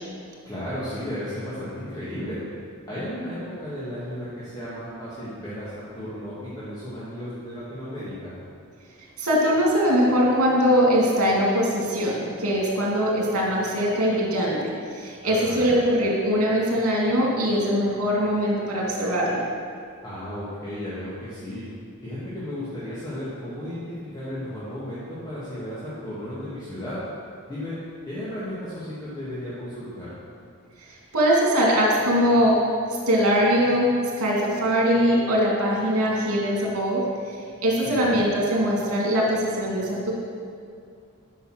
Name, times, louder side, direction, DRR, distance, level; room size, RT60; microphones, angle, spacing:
voice 1, 0.5-2.4 2.9-8.3 15.2-15.8 20.0-21.6 22.0-27.0 27.5-27.8 28.1-30.1 37.8-38.3, left 1 dB, 20° left, -11 dB, 1.9 m, -34 dB
voice 2, 9.2-19.4 30.8-32.7 33.1-37.1 37.6-40.1, equal, 90° right, -3 dB, 2.6 m, -22 dB
10.0 x 5.5 x 6.1 m, 2.3 s
head